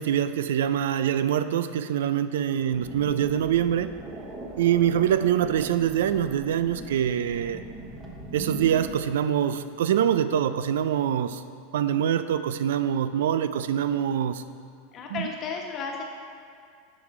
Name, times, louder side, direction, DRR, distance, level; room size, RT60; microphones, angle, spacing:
voice 1, 0.0-3.9 4.6-7.6 8.3-11.4 11.7-14.4, right 9 dB, 80° right, 12 dB, 0.3 m, -24 dB
sound 1, 2.7-9.0, right 1 dB, 20° right, 1.2 m, -40 dB
voice 2, 5.4-5.7 14.9-16.0, left 5 dB, 35° left, 0 dB, 1.2 m, -35 dB
11.0 x 3.7 x 4.7 m, 2.2 s
supercardioid pair, 120°, 0 cm